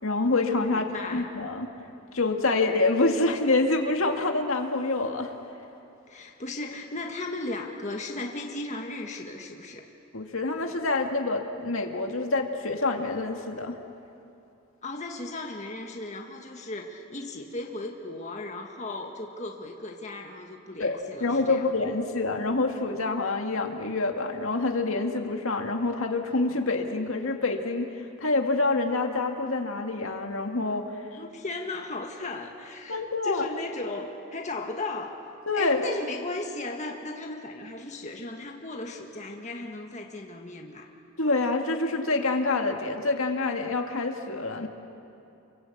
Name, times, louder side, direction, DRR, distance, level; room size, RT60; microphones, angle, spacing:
voice 1, 0.0-1.7 2.1-5.3 10.1-13.8 20.8-31.0 32.9-33.5 35.5-35.8 41.2-44.7, left 3 dB, 65° left, 4 dB, 2.0 m, -27 dB
voice 2, 0.7-1.3 6.1-9.9 14.8-21.7 31.1-35.1 35.5-40.9, left 2 dB, 30° left, 2 dB, 1.7 m, -36 dB
28.5 x 23.0 x 8.5 m, 2.8 s
head